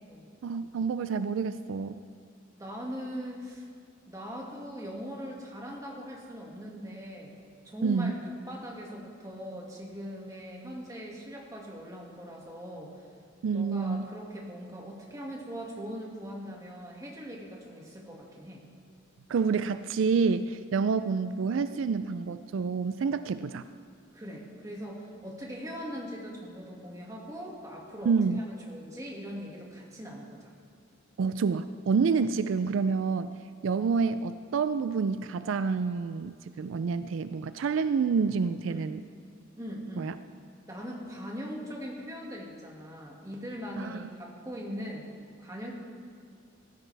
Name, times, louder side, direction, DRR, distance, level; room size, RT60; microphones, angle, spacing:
voice 1, 0.4-2.0 7.8-8.1 13.4-14.1 19.3-23.7 28.1-28.4 31.2-33.4 33.6-39.0 40.0-40.1 43.8-44.1, right 5 dB, 75° right, 12 dB, 0.4 m, -28 dB
voice 2, 2.5-3.6 4.1-7.3 7.6-13.0 13.5-18.6 24.1-30.5 38.7-38.8 39.6-40.1 40.7-45.1 45.4-45.7, equal, 15° right, -2 dB, 2.0 m, -40 dB
17.0 x 13.0 x 3.4 m, 2.2 s
head